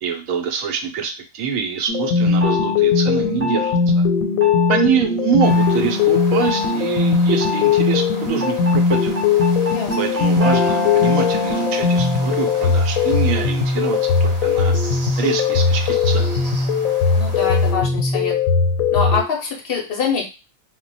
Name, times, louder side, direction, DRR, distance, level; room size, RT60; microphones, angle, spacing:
voice 1, 0.0-4.1 4.7-9.1 10.0-16.4, right 7 dB, 75° right, 5 dB, 1.0 m, -25 dB
sound 1, 1.9-19.2, left 5 dB, 90° left, 1.0 m, -19 dB
sound 2, 2.4-2.8 3.4-3.8 4.4-4.8 5.4-5.7 6.4-6.8 7.4-7.8 8.4-13.5, left 3 dB, 10° right, 0.8 m, -26 dB
sound 3, 5.4-17.7, right 1 dB, 40° right, 0.9 m, -37 dB
voice 2, 17.1-18.4 18.9-20.3, left 6 dB, 60° left, 0 dB, 0.7 m, -24 dB
2.3 x 2.1 x 3.8 m, 0.30 s
omnidirectional pair, 1.4 m